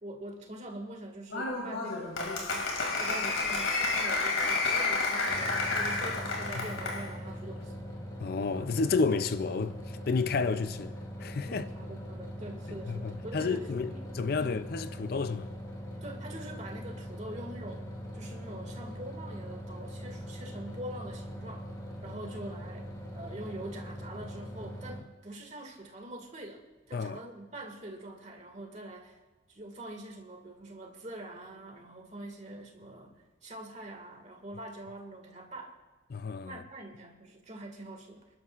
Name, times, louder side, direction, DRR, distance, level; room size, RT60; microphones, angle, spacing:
voice 1, 0.0-7.7 11.5-14.1 14.4-14.6 16.0-21.7 22.0-29.2 29.5-35.7 36.4-38.3, right 1 dB, 35° right, 1.9 m, -44 dB
Applause, 1.3-7.1, left 3 dB, 85° left, 2.4 m, -30 dB
sound 1, 5.3-25.0, equal, 20° left, 1.8 m, -41 dB
voice 2, 8.2-10.9 11.2-11.6 12.9-15.5 26.9-27.2 36.1-36.6, left 4 dB, 50° left, 0.4 m, -31 dB
29.0 x 12.0 x 2.4 m
head